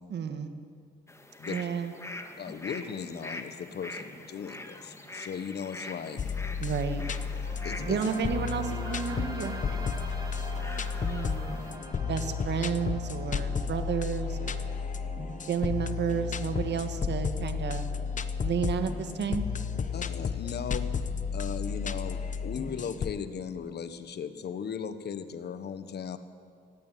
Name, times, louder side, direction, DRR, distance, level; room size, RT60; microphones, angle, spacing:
voice 1, 0.1-0.5 1.5-1.9 6.6-7.0 7.9-9.8 11.0-11.5 12.1-14.8 15.5-17.9 18.4-19.4, right 7 dB, 60° right, 8 dB, 1.8 m, -32 dB
sound 1, 1.1-11.8, left 2 dB, 15° left, 1.9 m, -44 dB
voice 2, 2.4-6.2 7.6-8.0 19.9-21.0 21.3-26.2, left 7 dB, 55° left, 10 dB, 1.4 m, -37 dB
sound 2, 6.2-23.1, left 6 dB, 40° left, 1.0 m, -33 dB
sound 3, 6.7-22.7, right 2 dB, 20° right, 3.6 m, -46 dB
17.0 x 16.5 x 9.4 m, 2.3 s
cardioid pair, 90°, 20 cm